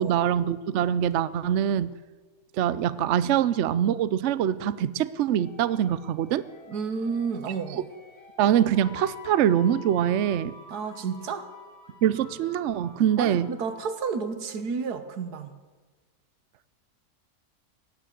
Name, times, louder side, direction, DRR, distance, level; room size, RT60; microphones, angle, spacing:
voice 1, 0.0-1.9 2.6-6.4 8.4-10.5 12.0-13.5, right 10 dB, 65° right, 16 dB, 0.8 m, -24 dB
sound 1, 5.3-15.0, left 4 dB, 25° left, 2.6 m, -50 dB
voice 2, 6.7-7.8 10.7-11.5 13.2-15.5, right 5 dB, 85° right, 10 dB, 1.7 m, -31 dB
17.0 x 10.0 x 8.1 m, 1.3 s
omnidirectional pair, 1.6 m